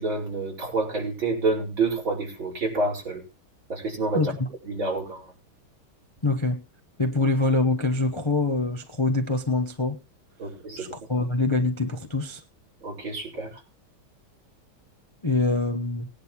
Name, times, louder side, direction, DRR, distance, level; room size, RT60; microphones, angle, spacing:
voice 1, 0.0-3.2 3.7-4.3 4.6-5.2 10.4-10.9 11.2-11.3 12.8-13.5, right 3 dB, 70° right, 6.0 m, -28 dB
voice 2, 4.1-4.5 6.2-6.6 7.0-10.0 10.8-12.4 15.2-16.1, left 3 dB, 25° left, 0.7 m, -24 dB
20.0 x 10.5 x 3.1 m
omnidirectional pair, 2.2 m